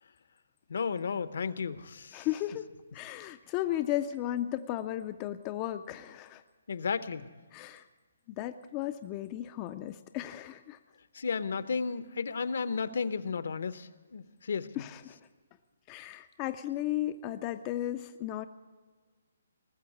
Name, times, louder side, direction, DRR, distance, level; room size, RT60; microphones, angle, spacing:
voice 1, 0.7-2.3 6.7-7.3 11.1-14.7, left 5 dB, 60° left, 14 dB, 0.7 m, -33 dB
voice 2, 2.1-2.7 2.9-6.4 7.5-7.9 8.3-10.8 14.8-15.2 15.9-18.5, left 13 dB, 20° left, 9 dB, 0.4 m, -35 dB
19.0 x 7.1 x 8.4 m, 1.4 s
hypercardioid pair, 170°, 0 cm